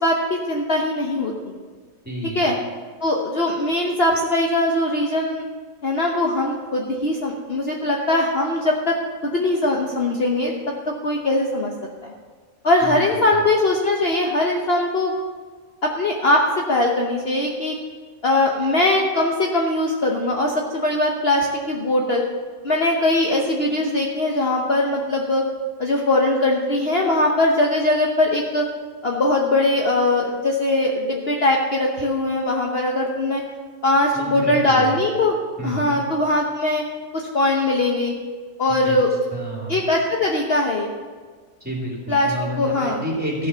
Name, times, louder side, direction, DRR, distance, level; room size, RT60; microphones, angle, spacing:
voice 1, 0.0-1.5 2.3-2.5 3.0-5.4 5.8-8.9 9.2-10.5 11.0-11.7 12.0-12.1 12.6-15.1 15.8-16.4 16.7-17.7 18.2-22.2 22.6-25.5 25.8-28.6 29.0-33.4 33.8-35.4 35.6-36.8 37.1-38.1 38.6-39.1 39.7-40.9 42.1-43.0, left 2 dB, 45° left, -1 dB, 1.2 m, -21 dB
voice 2, 2.0-2.5 12.8-12.9 13.3-13.4 34.1-35.0 35.6-36.0 38.8-39.0 39.3-39.8 41.6-43.5, right 1 dB, 5° right, -4 dB, 2.9 m, -29 dB
14.0 x 6.4 x 6.9 m, 1.5 s
omnidirectional pair, 1.6 m